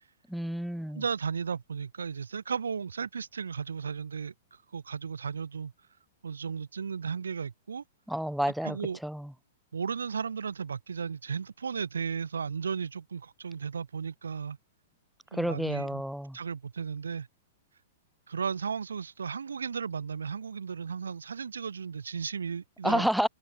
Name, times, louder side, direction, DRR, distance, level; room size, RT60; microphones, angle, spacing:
voice 1, 0.3-1.0 8.1-8.8 9.0-9.3 15.3-16.4 22.8-23.3, equal, ahead, 1.4 m, -29 dB
voice 2, 0.9-5.7 6.2-7.8 8.6-9.0 9.7-14.6 15.3-16.0 16.3-17.3 18.3-23.1, right 6 dB, 85° right, 1.0 m, -35 dB
hypercardioid pair, 120°, 0 cm